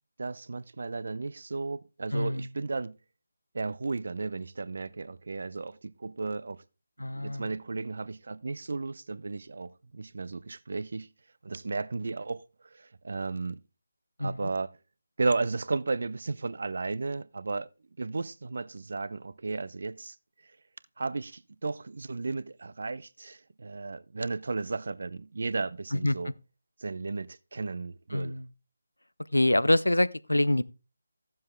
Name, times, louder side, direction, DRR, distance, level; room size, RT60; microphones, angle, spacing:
voice 1, 0.2-3.0 3.5-6.6 7.1-11.1 11.4-13.6 14.2-14.7 15.2-17.7 18.0-20.2 21.0-26.3 26.8-28.4, right 3 dB, 60° right, 0.6 m, -34 dB
voice 2, 2.1-2.5 7.0-7.5 14.2-14.5 25.9-26.3 28.1-28.5 29.3-30.6, left 1 dB, 90° left, 0.6 m, -26 dB
14.5 x 7.5 x 3.6 m
figure-of-eight pair, 155°, 0 cm